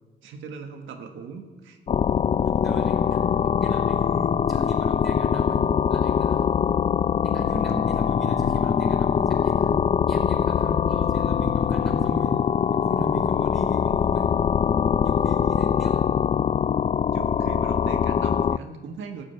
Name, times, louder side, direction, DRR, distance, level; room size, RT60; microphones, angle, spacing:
voice 1, 0.2-1.8 17.1-19.2, right 5 dB, 80° right, 4 dB, 1.5 m, -39 dB
sound 1, 1.9-18.6, left 8 dB, 30° left, 0.3 m, -23 dB
voice 2, 2.6-3.2 3.6-5.6 5.9-6.5 7.2-9.8 10.1-12.4 12.7-14.3 15.0-16.0, equal, ahead, -1 dB, 5.1 m, -36 dB
13.0 x 8.9 x 9.2 m, 1.3 s
cardioid pair, 90°, 20 cm